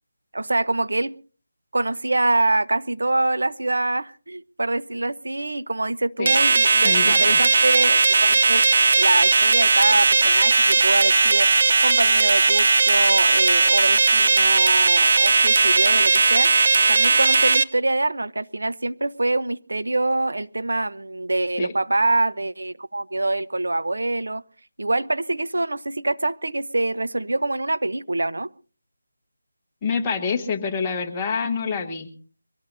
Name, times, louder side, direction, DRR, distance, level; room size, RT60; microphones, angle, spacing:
voice 1, 0.3-1.1 1.7-8.6 8.9-16.5 16.9-24.4 24.8-28.5, right 2 dB, 85° right, 0.8 m, -25 dB
sound 1, 6.3-17.6, right 3 dB, 40° right, 0.7 m, -17 dB
voice 2, 6.8-7.4 21.6-21.7 29.8-32.1, left 5 dB, 15° left, 1.2 m, -27 dB
23.5 x 17.5 x 2.7 m
figure-of-eight pair, 175°, 0 cm